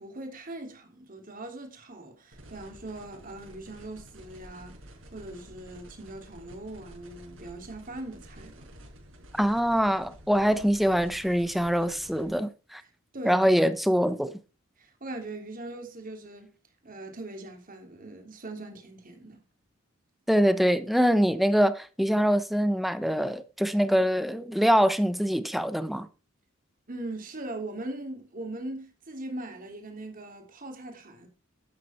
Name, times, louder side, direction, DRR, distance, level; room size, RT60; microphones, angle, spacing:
voice 1, 0.0-4.8 5.1-8.7 13.1-13.5 14.8-16.5 16.8-19.4 26.9-31.3, right 2 dB, 45° right, 3.1 m, -40 dB
sound 1, 2.3-12.3, right 1 dB, 70° right, 4.8 m, -50 dB
voice 2, 9.3-12.8 13.2-14.3 20.3-26.1, equal, ahead, 0.9 m, -24 dB
12.0 x 8.4 x 4.4 m
head